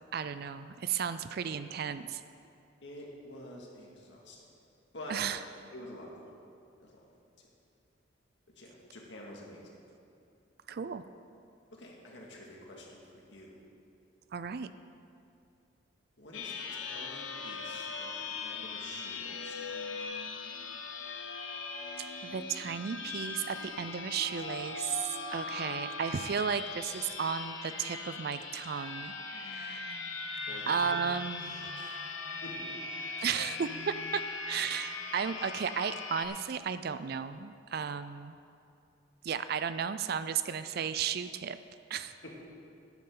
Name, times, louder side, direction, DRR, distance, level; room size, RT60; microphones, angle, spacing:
voice 1, 0.1-2.2 5.1-5.4 10.7-11.0 14.3-14.7 22.2-30.0 30.7-31.5 33.2-38.4 39.2-41.6 41.9-42.2, right 7 dB, 50° right, 12 dB, 0.4 m, -34 dB
voice 2, 2.8-4.5 4.9-5.2 5.7-6.3 6.8-7.1 7.4-7.5 8.6-9.8 11.7-13.5 16.2-19.8 30.5-30.7 31.4-32.0 32.4-32.8 42.2-42.3, left 1 dB, 65° left, -2 dB, 2.1 m, -49 dB
sound 1, 16.3-36.3, left 4 dB, 85° left, 1.0 m, -40 dB
13.0 x 10.5 x 3.9 m, 2.5 s
head